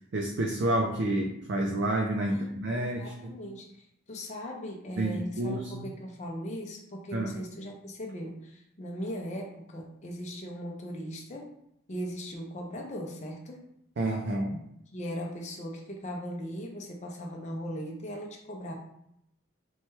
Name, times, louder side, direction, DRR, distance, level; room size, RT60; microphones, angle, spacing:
voice 1, 0.1-3.3 5.0-5.8 7.1-7.3 14.0-14.6, right 1 dB, 55° right, 1 dB, 0.4 m, -29 dB
voice 2, 2.3-11.5 11.9-13.7 14.9-18.7, equal, 35° left, 0 dB, 0.5 m, -39 dB
4.3 x 2.2 x 3.0 m, 0.78 s
head